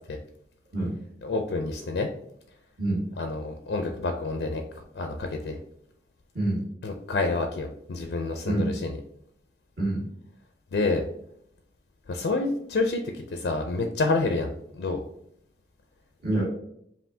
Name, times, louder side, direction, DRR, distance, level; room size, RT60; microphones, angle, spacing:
voice 1, 1.2-2.1 3.2-4.6 4.9-5.6 6.8-9.0 10.7-11.0 12.1-14.5 14.8-15.0, left 3 dB, 80° left, 4 dB, 0.4 m, -28 dB
voice 2, 9.8-10.1 16.2-16.4, right 2 dB, 55° right, -7 dB, 1.6 m, -26 dB
5.4 x 2.5 x 2.7 m, 0.72 s
head